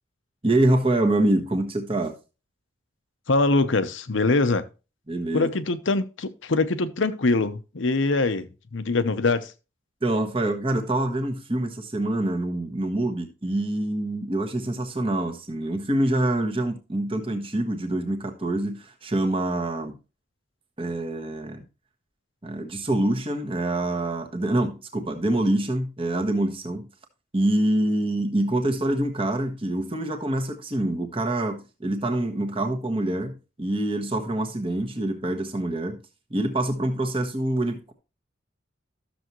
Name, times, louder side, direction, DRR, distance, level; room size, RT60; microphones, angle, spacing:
voice 1, 0.4-2.1 5.1-5.5 10.0-19.9 20.8-21.6 22.4-26.9 27.3-36.0 36.3-37.9, right 1 dB, 25° right, 1.4 m, -25 dB
voice 2, 3.3-4.6 5.3-9.5, left 3 dB, 70° left, 0.9 m, -23 dB
12.5 x 7.0 x 3.1 m
head